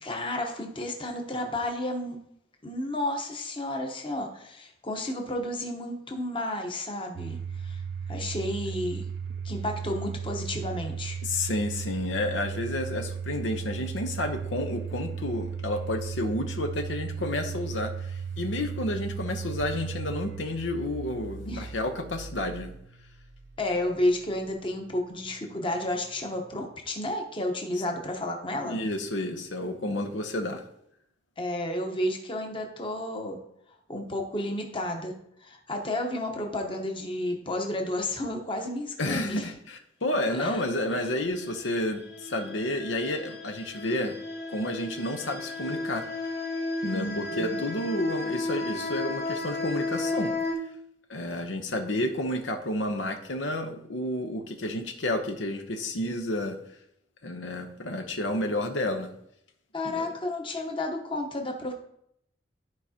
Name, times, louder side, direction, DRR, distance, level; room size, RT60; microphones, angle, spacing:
voice 1, 0.0-2.2 2.6-7.4 7.6-7.8 8.1-9.1 9.4-11.2 21.5-21.7 23.6-28.8 31.4-33.4 33.9-35.1 35.4-39.5 40.3-40.6 46.9-47.6 59.7-61.7, left 1 dB, 30° left, 2 dB, 1.0 m, -31 dB
Domestic sounds home sounds, 7.2-24.1, right 6 dB, 60° right, 0.4 m, -36 dB
voice 2, 11.2-22.7 28.6-30.6 39.0-44.1 44.5-46.0 46.8-50.3 51.1-56.6 57.2-59.1 59.8-60.1, left 1 dB, 85° left, 5 dB, 0.9 m, -30 dB
sound 1, 41.5-50.5, left 2 dB, 70° left, 2.3 m, -33 dB
13.0 x 4.8 x 2.9 m, 0.74 s
head